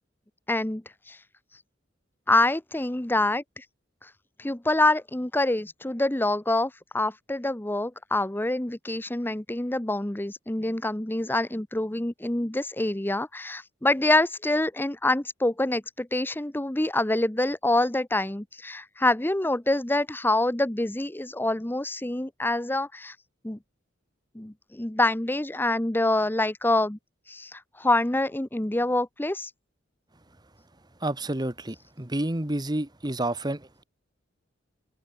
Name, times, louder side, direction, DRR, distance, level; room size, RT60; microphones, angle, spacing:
voice 1, 0.5-1.2 2.3-3.6 4.4-23.1 23.4-23.6 24.3-27.0 27.3-29.5, left 2 dB, 10° left, 0.8 m, -26 dB
voice 2, 31.0-33.8, right 1 dB, 20° right, 1.5 m, -30 dB
open air
head